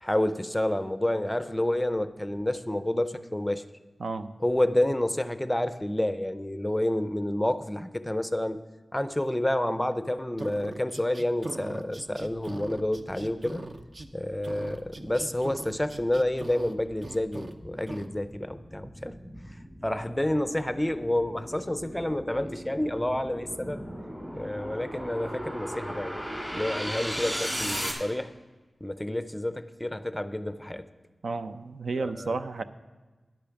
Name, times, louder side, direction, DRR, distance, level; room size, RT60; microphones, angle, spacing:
voice 1, 0.0-3.6 4.4-8.6 8.9-13.6 14.1-19.2 19.8-23.8 24.3-26.2 26.5-28.3 28.8-30.9 32.0-32.4, left 1 dB, 10° left, 12 dB, 0.5 m, -29 dB
voice 2, 4.0-4.3 31.2-32.6, right 3 dB, 80° right, 10 dB, 0.5 m, -32 dB
sound 1, 10.4-14.1 14.4-16.7 17.0-17.5 17.9-18.1, right 2 dB, 45° right, 0.7 m, -41 dB
sound 2, 13.9-27.9, equal, 15° right, 2.3 m, -37 dB
10.5 x 8.6 x 5.8 m, 1.3 s
wide cardioid pair, 95°, 0 cm